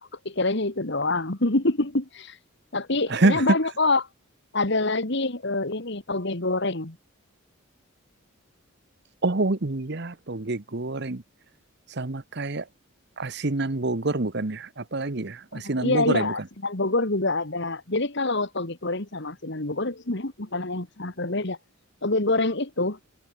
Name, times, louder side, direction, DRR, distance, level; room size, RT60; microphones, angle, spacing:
voice 1, 0.3-2.4 2.7-4.1 4.5-7.0 15.5-21.6 22.0-23.0, left 2 dB, 55° left, 2.0 m, -26 dB
voice 2, 3.1-3.4 9.2-11.2 11.9-12.6 13.2-16.3, right 2 dB, 50° right, 1.1 m, -26 dB
head